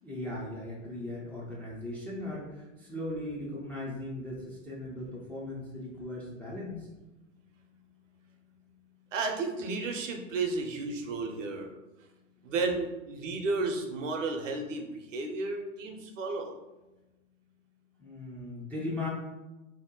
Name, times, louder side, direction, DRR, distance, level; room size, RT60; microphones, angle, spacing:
voice 1, 0.0-6.9 18.0-19.1, left 1 dB, 5° left, -7 dB, 0.3 m, -38 dB
voice 2, 9.1-11.7 12.4-16.5, right 3 dB, 70° right, 4 dB, 0.7 m, -33 dB
2.8 x 2.1 x 3.7 m, 1.1 s
hypercardioid pair, 100°, 39 cm